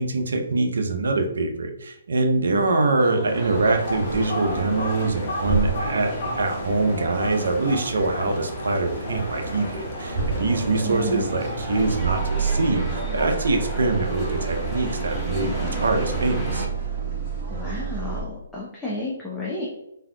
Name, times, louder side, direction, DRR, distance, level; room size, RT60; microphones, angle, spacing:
voice 1, 0.0-16.7, right 3 dB, 75° right, 4 dB, 0.6 m, -24 dB
sound 1, 2.4-18.2, right 5 dB, 35° right, 1.2 m, -31 dB
sound 2, 3.3-16.7, equal, 10° right, 1.0 m, -33 dB
sound 3, 3.5-11.2, left 1 dB, 50° left, 0.7 m, -35 dB
voice 2, 10.8-11.4 17.5-19.7, left 2 dB, 5° left, -7 dB, 0.6 m, -32 dB
3.4 x 2.6 x 2.2 m, 0.85 s
hypercardioid pair, 140°, 0 cm